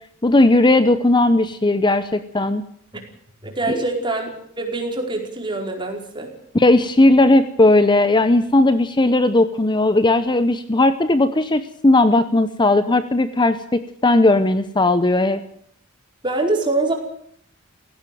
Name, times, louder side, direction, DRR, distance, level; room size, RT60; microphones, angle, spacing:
voice 1, 0.2-2.6 6.5-15.4, left 2 dB, 20° left, 12 dB, 0.8 m, -16 dB
voice 2, 3.4-4.3 4.6-6.3 16.2-16.9, right 2 dB, 20° right, 2 dB, 4.7 m, -24 dB
17.0 x 16.5 x 9.3 m, 0.66 s
head